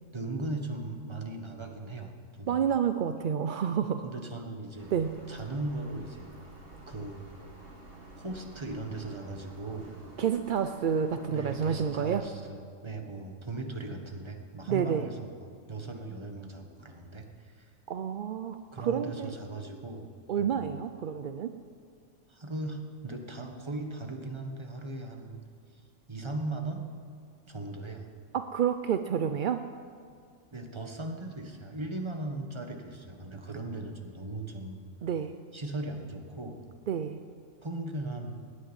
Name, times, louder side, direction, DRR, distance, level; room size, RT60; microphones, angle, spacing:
voice 1, 0.1-2.6 4.0-4.9 5.3-6.3 6.9-7.2 8.2-9.9 11.3-17.7 18.7-20.1 20.4-20.6 22.3-25.4 26.1-26.8 27.5-28.1 30.5-34.8 35.5-36.6 37.6-38.3, right 2 dB, 20° right, 4 dB, 1.3 m, -38 dB
voice 2, 2.5-4.1 4.9-5.1 10.2-12.2 14.7-15.1 17.9-19.3 20.3-21.5 28.3-29.6 35.0-35.3 36.9-37.2, right 8 dB, 60° right, 9 dB, 0.5 m, -29 dB
sound 1, 4.8-12.2, right 2 dB, 45° right, 1.9 m, -49 dB
17.5 x 6.6 x 9.8 m, 2.3 s
omnidirectional pair, 1.4 m